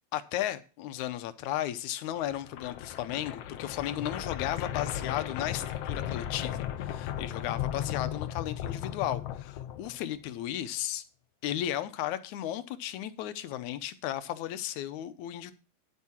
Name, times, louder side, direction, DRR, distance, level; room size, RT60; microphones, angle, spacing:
voice 1, 0.1-11.0 11.4-15.5, left 12 dB, 85° left, 12 dB, 2.2 m, -34 dB
sound 1, 2.2-10.2, left 11 dB, 70° left, 1.7 m, -36 dB
9.9 x 8.4 x 4.3 m, 0.34 s
omnidirectional pair, 3.3 m